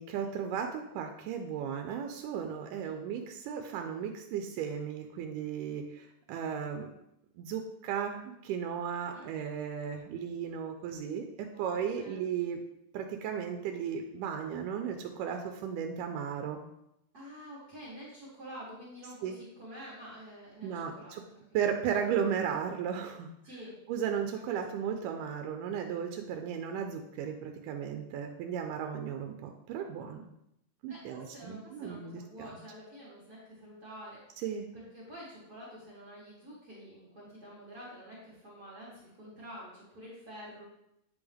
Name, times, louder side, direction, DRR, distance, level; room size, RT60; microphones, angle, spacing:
voice 1, 0.0-6.9 7.4-12.6 12.9-16.6 19.2-19.4 20.6-21.3 21.5-23.3 23.9-30.3 30.8-32.6 34.4-34.7, right 7 dB, 90° right, 5 dB, 2.1 m, -35 dB
voice 2, 11.8-12.3 17.1-21.1 23.4-23.8 24.7-24.8 30.9-34.4 34.7-40.6, equal, 40° right, -8 dB, 1.7 m, -48 dB
9.6 x 3.5 x 3.5 m, 0.81 s
omnidirectional pair, 3.6 m